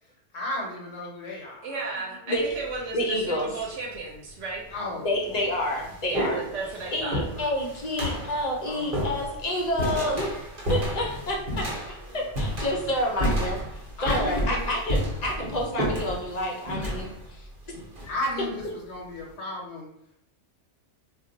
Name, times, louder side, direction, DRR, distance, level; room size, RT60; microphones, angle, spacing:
voice 1, 0.3-2.3 4.7-5.8 6.2-6.4 8.7-9.1 12.0-12.5 14.0-14.7 18.1-19.9, left 1 dB, 70° left, -1 dB, 0.9 m, -35 dB
voice 2, 1.6-4.6 6.1-7.2, right 3 dB, 85° right, -2 dB, 0.9 m, -34 dB
sound 1, 2.4-2.8 3.7-3.8 4.7-4.8 5.2-18.7, equal, 50° right, 1.0 m, -31 dB
voice 3, 2.9-3.7 5.0-6.4 6.9-11.7 12.1-13.6 14.0-17.4 18.0-18.1, left 1 dB, 45° left, -1 dB, 0.6 m, -29 dB
2.3 x 2.1 x 3.7 m, 0.77 s
omnidirectional pair, 1.2 m